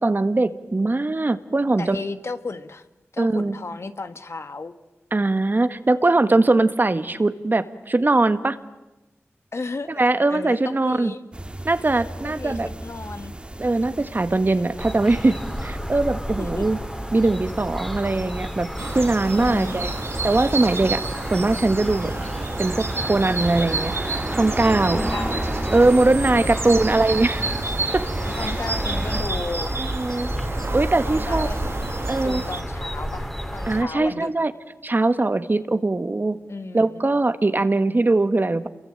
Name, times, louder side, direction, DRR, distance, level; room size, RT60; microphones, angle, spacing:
voice 1, 0.0-2.0 3.2-3.6 5.1-8.6 10.0-11.1 11.6-12.7 13.6-16.8 17.1-18.7 18.9-19.9 20.2-21.0 21.3-22.1 22.6-23.9 24.4-25.0 25.7-27.5 27.9-28.0 28.4-28.5 29.8-30.3 30.7-31.5 32.1-32.4 33.7-34.5 34.8-36.4 36.7-38.7, right 2 dB, 40° right, 12 dB, 1.5 m, -21 dB
voice 2, 1.8-2.9 3.1-4.7 9.5-10.0 10.3-11.2 12.2-13.3 16.4-16.7 19.4-19.8 24.9-25.7 26.4-26.7 28.3-29.7 31.0-31.6 32.2-34.3 36.5-37.0, left 3 dB, 60° left, 10 dB, 1.6 m, -34 dB
sound 1, 11.3-29.2, right 1 dB, 20° right, 2.2 m, -34 dB
sound 2, 14.8-33.8, equal, 5° left, 3.1 m, -31 dB
sound 3, 18.8-32.6, right 3 dB, 60° right, 2.2 m, -31 dB
28.0 x 22.5 x 8.9 m, 1.0 s
cardioid pair, 50°, 5 cm